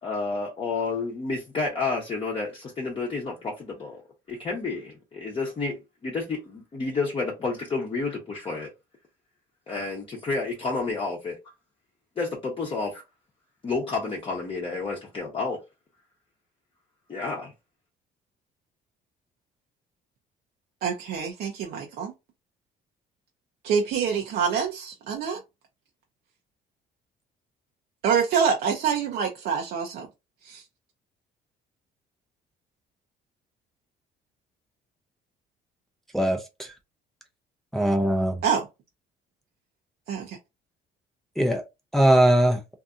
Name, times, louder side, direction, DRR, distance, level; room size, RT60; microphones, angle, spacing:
voice 1, 0.0-4.0 4.3-8.7 9.7-11.4 12.2-13.0 13.6-15.6 17.1-17.5, left 3 dB, 30° left, 0.8 m, -30 dB
voice 2, 20.8-22.1 23.6-25.4 28.0-30.1 30.4-30.6 38.4-38.7 40.1-40.4, right 7 dB, 65° right, 0.6 m, -26 dB
voice 3, 36.1-36.7 37.7-38.4 41.4-41.6 41.9-42.6, right 1 dB, ahead, 0.5 m, -20 dB
2.7 x 2.5 x 2.4 m
cardioid pair, 110°, 17 cm